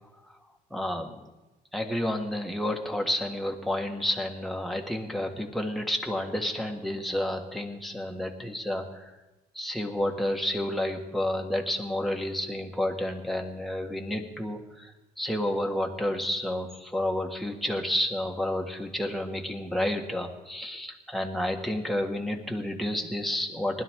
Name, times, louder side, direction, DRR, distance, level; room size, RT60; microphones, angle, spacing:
voice 1, 0.7-1.3 1.7-9.1 9.6-14.9 15.2-23.8, left 1 dB, ahead, 1 dB, 1.8 m, -30 dB
20.0 x 12.0 x 3.8 m, 1.1 s
cardioid pair, 110°, 17 cm